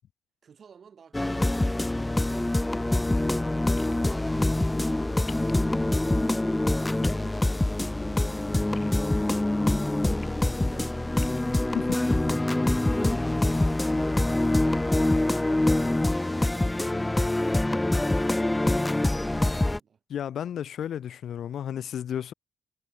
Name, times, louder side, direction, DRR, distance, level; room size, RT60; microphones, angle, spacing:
voice 1, 0.4-2.2 7.0-10.1, right 7 dB, 50° right, 5.2 m, -55 dB
sound 1, 1.1-19.8, left 1 dB, 10° left, 0.4 m, -25 dB
sound 2, 3.8-3.9 5.3-5.5 7.0-7.2 8.8-9.3 10.0-10.3 11.1-11.6, left 5 dB, 35° left, 1.4 m, -46 dB
voice 2, 20.1-22.3, left 9 dB, 65° left, 0.6 m, -32 dB
cardioid pair, 90°, 0 cm